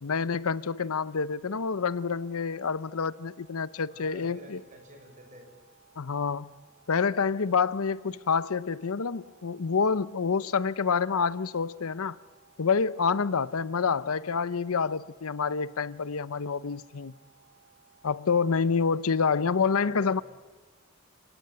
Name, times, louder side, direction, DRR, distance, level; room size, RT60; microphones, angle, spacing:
voice 1, 0.0-4.6 6.0-6.5 6.9-12.2 12.6-17.1 18.0-20.2, left 5 dB, 90° left, 0.7 m, -27 dB
sound 1, 1.5-19.6, right 6 dB, 45° left, 4.1 m, -62 dB
voice 2, 3.8-5.5 19.6-20.2, right 1 dB, 35° right, 6.8 m, -50 dB
29.5 x 17.5 x 9.2 m
head